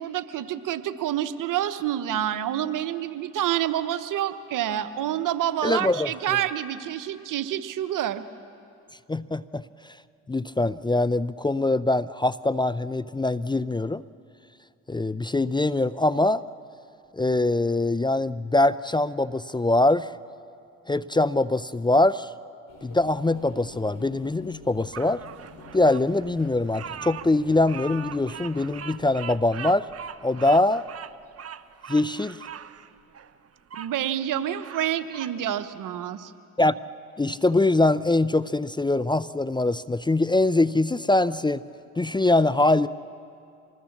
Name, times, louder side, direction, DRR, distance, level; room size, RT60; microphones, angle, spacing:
voice 1, 0.0-8.2 33.8-36.3, right 11 dB, 70° right, 12 dB, 1.0 m, -28 dB
voice 2, 5.6-6.1 9.1-9.6 10.3-14.0 14.9-16.4 17.1-20.1 20.9-22.3 22.8-25.2 25.7-29.9 30.2-30.8 31.9-32.4 36.6-36.8 37.2-41.6 42.0-42.9, left 2 dB, 15° left, 16 dB, 0.5 m, -23 dB
sound 1, 22.7-29.4, left 3 dB, 70° left, 3.0 m, -48 dB
Bird vocalization bird call bird song, 24.9-33.9 34.4-35.4, right 8 dB, 45° right, 0.8 m, -41 dB
25.0 x 20.0 x 7.3 m, 2.5 s
supercardioid pair, 50°, 33 cm